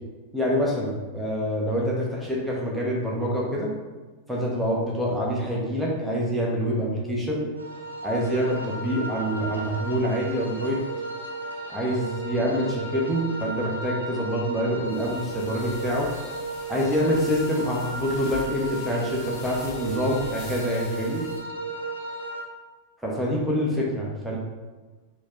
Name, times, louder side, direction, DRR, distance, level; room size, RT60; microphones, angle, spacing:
voice 1, 0.3-3.7 4.3-7.5 8.0-10.8 11.7-16.1 16.7-21.2 23.0-24.4, equal, 5° right, -4 dB, 0.8 m, -26 dB
sound 1, 7.6-22.4, right 2 dB, 90° right, 0.5 m, -34 dB
sound 2, 14.9-21.4, left 2 dB, 30° left, 0.7 m, -44 dB
4.3 x 2.3 x 2.9 m, 1.3 s
figure-of-eight pair, 90°, 0 cm